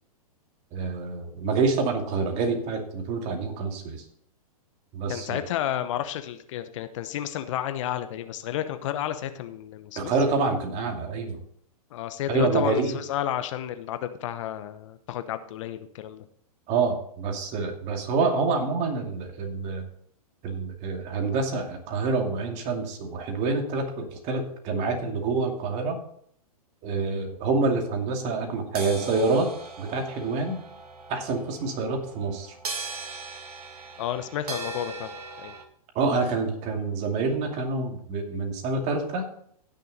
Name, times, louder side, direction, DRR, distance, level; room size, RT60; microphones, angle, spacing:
voice 1, 0.7-4.0 4.9-5.4 10.0-11.4 12.3-13.0 16.7-19.8 20.4-26.0 26.8-29.5 29.8-30.6 31.1-32.6 35.9-39.3, right 4 dB, 35° right, 3 dB, 2.5 m, -27 dB
voice 2, 5.1-10.1 11.9-16.2 34.0-35.1 35.4-35.5, left 11 dB, 55° left, 11 dB, 1.0 m, -31 dB
sound 1, 28.7-35.6, right 3 dB, 75° right, 1.9 m, -39 dB
16.0 x 6.6 x 4.1 m, 0.65 s
hypercardioid pair, 115°, 20 cm